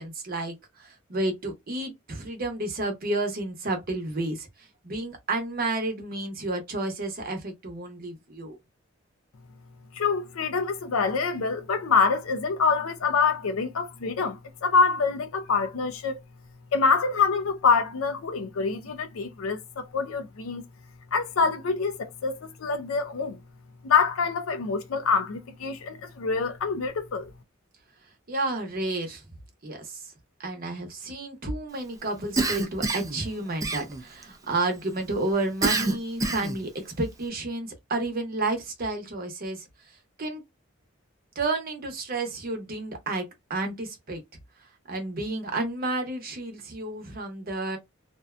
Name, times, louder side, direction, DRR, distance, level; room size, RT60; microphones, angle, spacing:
voice 1, 0.0-8.6 28.3-29.2 29.6-30.1 30.4-40.4 41.4-44.2 44.9-47.8, right 2 dB, 45° right, 0.8 m, -31 dB
voice 2, 9.9-16.2 16.7-20.6 21.1-23.4 23.8-27.3, left 5 dB, 90° left, 0.5 m, -25 dB
Cough, 32.4-33.2 33.6-34.2 35.6-36.6, right 3 dB, 15° right, 0.4 m, -26 dB
2.6 x 2.2 x 2.4 m
head